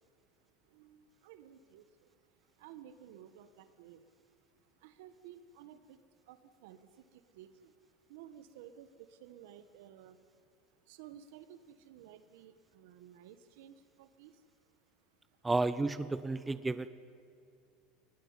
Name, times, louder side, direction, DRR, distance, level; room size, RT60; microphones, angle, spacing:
voice 1, 0.7-1.8 2.6-4.0 4.8-6.0 6.3-6.8 7.3-7.7 8.1-10.2 10.9-14.3, right 10 dB, 75° right, 12 dB, 1.4 m, -54 dB
voice 2, 15.4-16.9, right 3 dB, 10° right, 14 dB, 0.6 m, -32 dB
21.0 x 19.5 x 9.7 m, 2.5 s
supercardioid pair, 140°, 0 cm